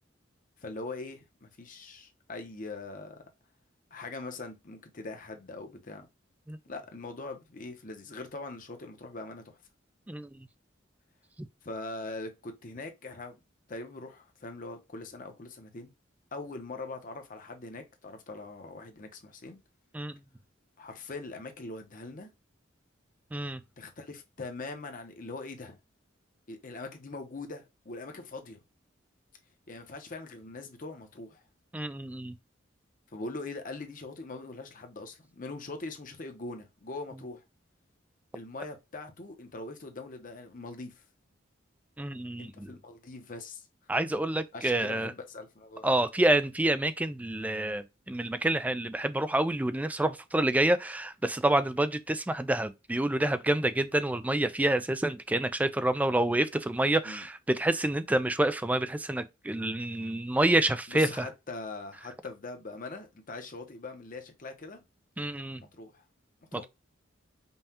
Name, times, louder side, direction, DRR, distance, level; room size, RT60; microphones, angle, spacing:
voice 1, 0.6-3.2 3.9-6.1 6.7-9.6 11.6-13.4 13.7-15.9 16.3-19.6 20.8-22.3 23.8-25.8 26.5-28.6 29.7-31.4 33.1-37.4 38.3-40.9 42.4-43.7 44.5-45.9 57.0-57.3 60.9-64.8 65.7-66.0 66.5-66.7, left 3 dB, 45° left, 0.8 m, -42 dB
voice 2, 31.7-32.3 42.0-42.7 43.9-45.1 45.8-61.3 65.2-65.6, right 1 dB, 10° right, 0.3 m, -28 dB
5.4 x 2.3 x 2.8 m
head